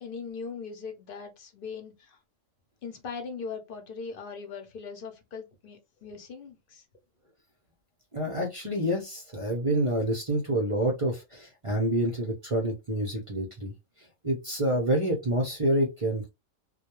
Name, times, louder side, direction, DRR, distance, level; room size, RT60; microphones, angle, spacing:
voice 1, 0.0-2.2 2.8-6.8, left 5 dB, 50° left, 0.7 m, -40 dB
voice 2, 8.1-13.7 14.2-16.3, right 1 dB, 40° right, 0.5 m, -27 dB
2.2 x 2.2 x 2.9 m
omnidirectional pair, 1.4 m